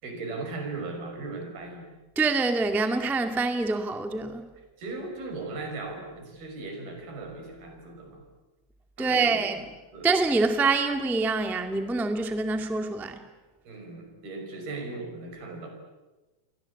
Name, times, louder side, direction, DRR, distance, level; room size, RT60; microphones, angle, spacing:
voice 1, 0.0-2.0 4.8-8.2 9.0-9.4 9.9-10.1 13.6-15.7, right 3 dB, 85° right, 7.6 m, -37 dB
voice 2, 2.1-4.5 9.0-9.7 10.0-13.2, right 3 dB, ahead, 1.0 m, -25 dB
29.5 x 23.5 x 8.6 m
omnidirectional pair, 4.3 m